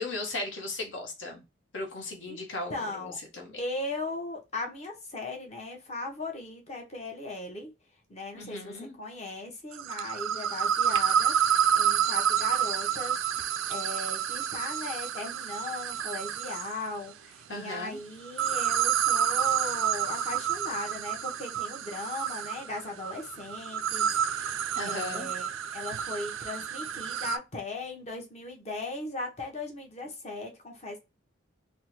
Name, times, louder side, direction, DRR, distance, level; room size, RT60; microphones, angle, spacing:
voice 1, 0.0-1.4 1.7-3.6 8.3-9.0 17.5-18.0 24.7-25.3, left 2 dB, 65° left, 0.9 m, -37 dB
voice 2, 2.7-3.2 3.6-7.7 8.1-24.6 24.8-31.0, left 2 dB, 35° left, 0.9 m, -38 dB
sound 1, 9.7-16.9 18.2-27.4, right 9 dB, 80° right, 0.3 m, -29 dB
3.5 x 2.1 x 2.9 m
head